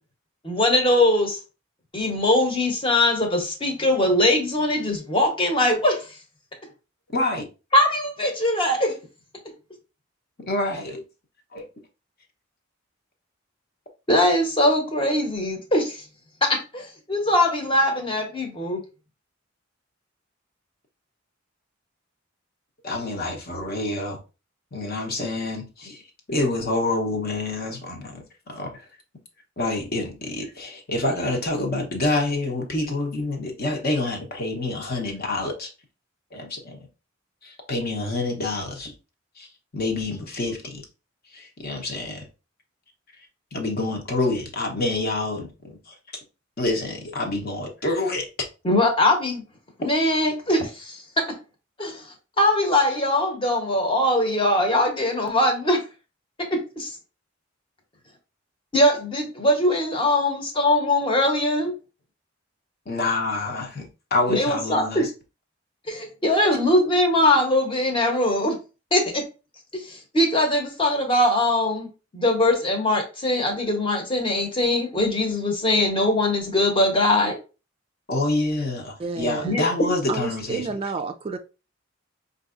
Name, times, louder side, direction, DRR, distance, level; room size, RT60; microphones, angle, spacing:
voice 1, 0.4-1.4 1.9-6.1 7.7-8.9 14.1-16.0 16.4-18.8 48.6-49.4 49.8-51.3 51.8-52.0 52.4-55.8 56.5-56.9 58.7-61.7 64.3-65.1 65.9-68.6 68.9-69.2 69.7-77.4 79.4-79.7, left 1 dB, 25° left, 1.0 m, -21 dB
voice 2, 7.1-7.5 10.5-11.0 11.5-11.7 22.8-24.2 24.7-26.0 26.3-28.8 29.6-35.7 36.3-36.9 37.4-38.9 39.4-39.5 39.7-40.8 41.3-42.2 43.5-45.8 46.6-48.3 62.9-65.1 78.1-80.7, left 2 dB, 50° left, 1.0 m, -27 dB
voice 3, 79.0-79.6 80.1-81.4, right 4 dB, 30° right, 0.3 m, -30 dB
5.1 x 2.7 x 2.5 m
head